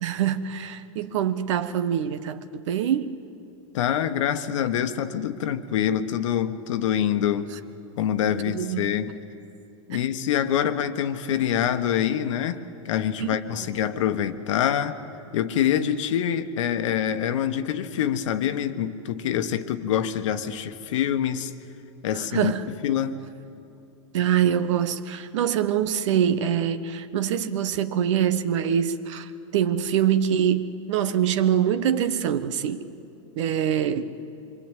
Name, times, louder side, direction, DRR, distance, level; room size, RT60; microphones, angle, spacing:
voice 1, 0.0-3.2 8.5-8.9 9.9-10.0 13.2-13.4 22.1-22.7 24.1-32.9 33.3-34.1, right 9 dB, 70° right, 1.3 m, -24 dB
voice 2, 3.7-7.5 8.0-9.1 9.9-15.0 15.3-21.5 22.0-22.5 22.8-23.2, left 9 dB, 70° left, 1.4 m, -25 dB
25.5 x 23.5 x 9.2 m
hypercardioid pair, 115°, 16 cm